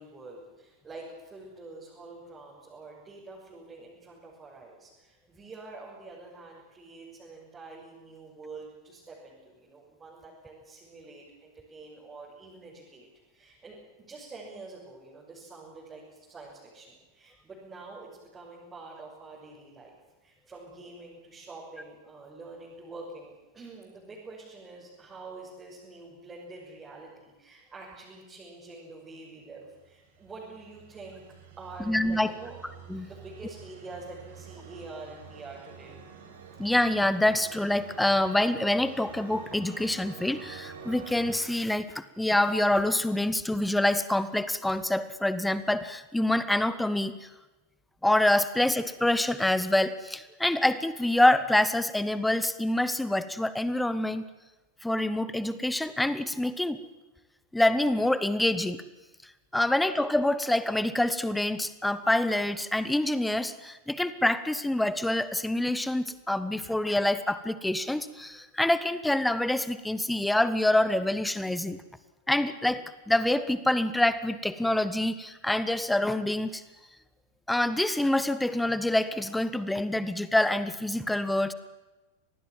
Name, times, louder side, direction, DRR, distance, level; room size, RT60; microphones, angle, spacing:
voice 1, 0.0-19.9 20.2-31.2 31.6-32.6 33.0-36.0 59.7-60.0, right 3 dB, 15° right, -5 dB, 6.6 m, -46 dB
sound 1, 29.8-41.4, right 6 dB, 60° right, 4.9 m, -47 dB
voice 2, 31.9-32.3 32.9-33.1 36.6-47.2 48.0-54.2 54.8-56.8 57.5-58.8 59.5-71.8 72.3-76.6 77.5-81.5, left 1 dB, 5° left, 14 dB, 1.2 m, -26 dB
25.5 x 19.5 x 7.6 m, 1.1 s
figure-of-eight pair, 90°, 0 cm